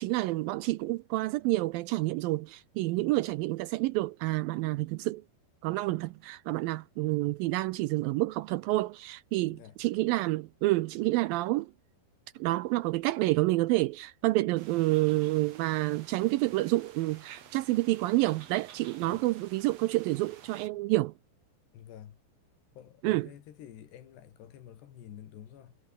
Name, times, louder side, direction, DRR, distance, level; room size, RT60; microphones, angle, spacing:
voice 1, 0.0-5.2 5.6-11.7 12.4-21.1 23.0-23.3, right 19 dB, 85° right, 2.1 m, -28 dB
sound 1, 14.6-20.7, right 8 dB, 50° right, 2.5 m, -52 dB
voice 2, 21.7-22.2 22.7-25.8, left 10 dB, 85° left, 4.4 m, -49 dB
omnidirectional pair, 4.7 m